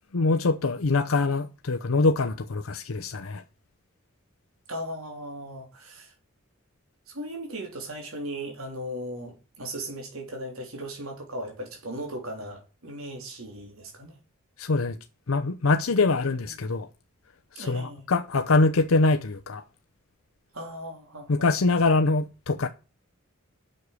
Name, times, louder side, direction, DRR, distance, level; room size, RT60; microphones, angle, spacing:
voice 1, 0.1-3.4 14.6-15.0 15.3-16.9 17.5-19.6 21.3-22.7, left 3 dB, 80° left, 0.7 m, -24 dB
voice 2, 4.7-6.1 7.1-14.2 16.4-16.8 17.5-18.0 20.5-21.5, right 1 dB, 85° right, 3.3 m, -37 dB
7.8 x 6.5 x 8.2 m
head